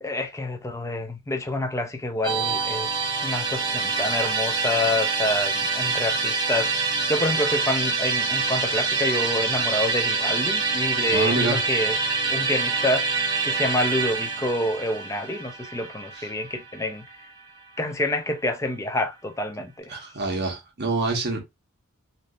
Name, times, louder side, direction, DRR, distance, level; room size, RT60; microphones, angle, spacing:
voice 1, 0.0-2.9 3.2-6.7 7.1-12.0 12.3-17.0 17.8-19.9, left 1 dB, 15° left, 0.5 m, -27 dB
Musical instrument, 2.2-17.4, right 4 dB, 20° right, 0.9 m, -26 dB
voice 2, 11.1-11.6 16.1-16.3 19.9-21.4, right 2 dB, 50° right, 1.0 m, -26 dB
3.5 x 2.7 x 2.4 m
head